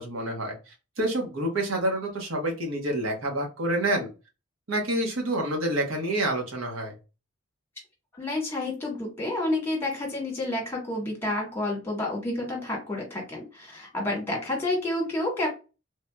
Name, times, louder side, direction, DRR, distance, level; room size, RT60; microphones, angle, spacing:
voice 1, 0.0-4.1 4.7-6.9, right 1 dB, 80° right, 0 dB, 1.1 m, -28 dB
voice 2, 8.1-15.5, left 1 dB, 10° left, -1 dB, 1.3 m, -29 dB
3.4 x 2.7 x 2.2 m, 0.30 s
head